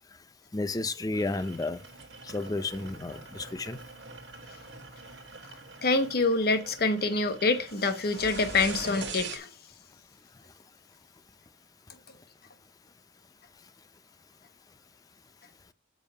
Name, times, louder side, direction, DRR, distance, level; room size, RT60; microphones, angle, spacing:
voice 1, 0.5-1.8 2.2-3.8, left 2 dB, 20° left, 0.4 m, -32 dB
sound 1, 1.1-9.4, right 4 dB, 65° right, 1.2 m, -44 dB
voice 2, 5.8-9.5, left 3 dB, 55° left, 1.0 m, -26 dB
7.3 x 4.7 x 5.4 m
head